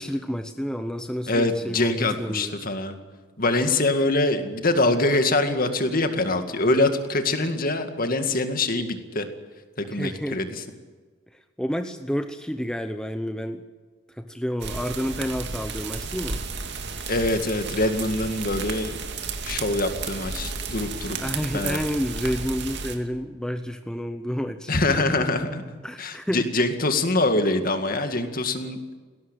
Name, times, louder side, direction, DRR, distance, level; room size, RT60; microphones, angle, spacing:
voice 1, 0.0-2.6 9.9-10.4 11.3-13.6 14.1-16.4 21.2-25.1 25.8-26.5, equal, 5° left, 7 dB, 0.8 m, -30 dB
voice 2, 1.3-3.0 3.4-9.3 9.8-10.5 17.1-18.9 19.4-21.2 21.5-21.8 24.7-28.8, left 2 dB, 45° left, 7 dB, 2.1 m, -24 dB
sound 1, 14.6-23.0, right 4 dB, 55° right, 2.4 m, -33 dB
19.5 x 17.5 x 9.0 m, 1.4 s
head